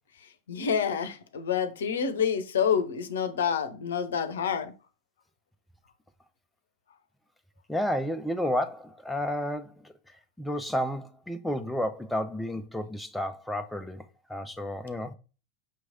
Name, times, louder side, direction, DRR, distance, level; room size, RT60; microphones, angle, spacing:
voice 1, 0.2-4.7, left 7 dB, 60° left, 0.6 m, -28 dB
voice 2, 7.7-9.9 10.4-14.0 14.3-15.1, equal, 5° left, 0.4 m, -31 dB
6.0 x 3.1 x 2.5 m
figure-of-eight pair, 90°, 0 cm